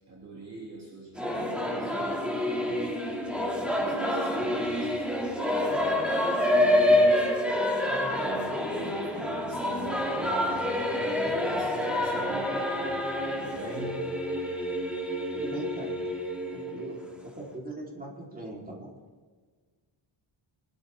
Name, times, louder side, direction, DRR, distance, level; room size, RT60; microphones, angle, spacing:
voice 1, 0.1-7.4 7.8-13.0 13.3-14.0, right 3 dB, 35° right, -3 dB, 3.0 m, -44 dB
Singing / Musical instrument, 1.2-17.5, left 1 dB, ahead, 2.5 m, -28 dB
voice 2, 15.3-16.0 16.5-17.0 17.2-18.9, right 2 dB, 20° right, -3 dB, 4.1 m, -40 dB
23.5 x 13.0 x 3.7 m, 1.5 s
cardioid pair, 130°, 48 cm